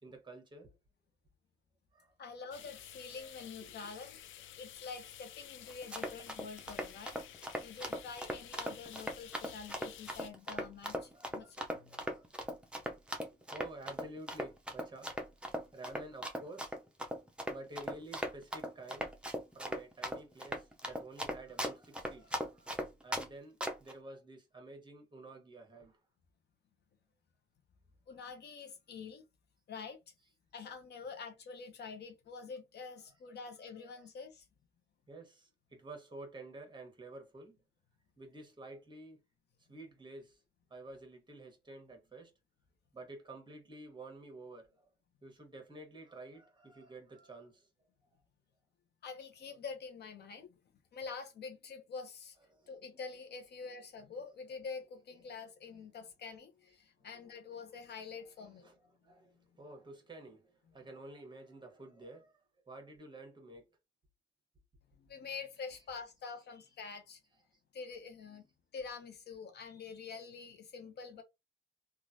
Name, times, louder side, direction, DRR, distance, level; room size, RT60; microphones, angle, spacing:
voice 1, 0.0-0.7 1.9-2.3 3.2-3.7 10.8-11.5 11.9-12.3 13.5-15.2 15.7-16.8 17.5-19.1 19.5-26.0 35.1-37.6 38.2-39.2 39.7-40.4 40.7-42.3 42.9-44.9 45.2-47.7 52.5-52.8 58.6-58.8 59.0-62.4 62.7-63.6, right 2 dB, 25° right, 1.2 m, -51 dB
voice 2, 2.2-4.2 4.6-7.2 7.6-11.9 28.1-29.2 29.7-30.0 30.5-34.5 49.0-50.5 50.9-52.4 52.7-58.7 64.9-67.2 67.7-68.5 68.7-71.2, left 5 dB, 55° left, 0.8 m, -46 dB
sound 1, 2.5-10.3, left 11 dB, 75° left, 0.4 m, -52 dB
Run, 5.7-23.3 23.6-23.9, equal, 5° right, 0.6 m, -38 dB
3.1 x 2.5 x 2.7 m
cardioid pair, 90°, 20 cm